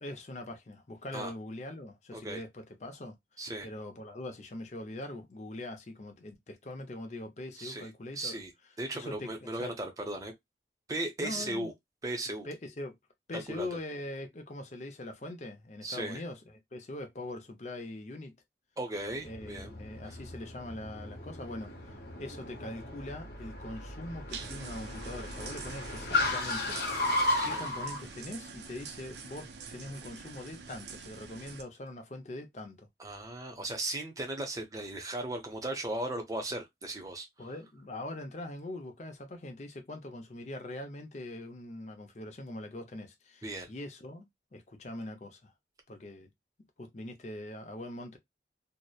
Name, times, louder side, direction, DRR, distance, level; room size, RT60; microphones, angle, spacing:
voice 1, 0.0-8.4 8.9-9.8 11.2-11.7 12.4-13.0 13.3-18.3 19.2-27.0 27.4-32.9 37.4-44.3 44.5-45.5 45.9-46.3 46.8-48.2, left 1 dB, 40° left, 0.5 m, -42 dB
voice 2, 7.6-7.9 8.1-8.5 8.8-10.3 10.9-11.7 12.0-12.5 13.3-13.7 15.8-16.2 18.8-19.7 20.0-20.2 27.3-27.7 33.0-37.3 43.4-43.7, right 2 dB, 20° right, 0.6 m, -37 dB
Car, 19.1-28.0, left 2 dB, 65° left, 0.9 m, -35 dB
sound 1, 24.3-31.6, right 5 dB, 80° right, 0.5 m, -46 dB
2.8 x 2.0 x 2.2 m
head